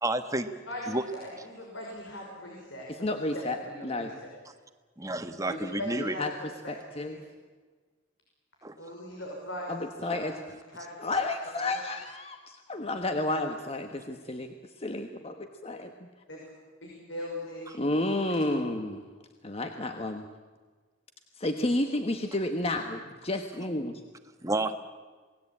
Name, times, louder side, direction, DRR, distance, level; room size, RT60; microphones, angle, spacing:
voice 1, 0.0-0.5 0.9-1.0 5.0-6.1 8.6-8.8 24.4-24.7, right 2 dB, 15° right, 8 dB, 1.5 m, -30 dB
voice 2, 0.7-4.1 5.5-6.2 6.6-7.2 8.8-10.3 10.7-10.9 11.6-11.7 13.8-13.9 16.3-16.4 16.8-17.9 18.3-18.8, left 1 dB, 85° left, -2 dB, 5.8 m, -40 dB
voice 3, 2.9-3.6 3.8-4.1 6.2-6.3 6.7-7.2 9.7-10.3 11.0-16.1 17.7-19.0 19.4-20.3 21.4-24.0, left 2 dB, 30° left, 6 dB, 1.3 m, -31 dB
28.0 x 19.0 x 8.7 m, 1.4 s
head